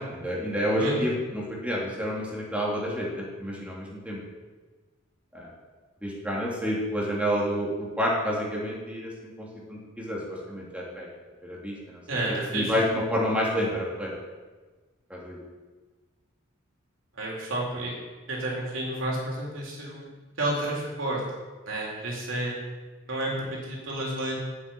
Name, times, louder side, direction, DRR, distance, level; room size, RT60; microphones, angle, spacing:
voice 1, 0.0-4.2 5.3-5.5 6.0-9.1 9.4-10.2 10.5-11.1 11.4-12.0 12.3-14.1 15.1-15.4, equal, 5° right, -4 dB, 2.8 m, -29 dB
voice 2, 12.1-12.7 17.2-17.9 18.3-20.1 20.4-21.2 21.7-22.6 23.1-24.3, right 1 dB, 65° right, -4 dB, 3.5 m, -30 dB
8.7 x 7.9 x 9.2 m, 1.3 s
head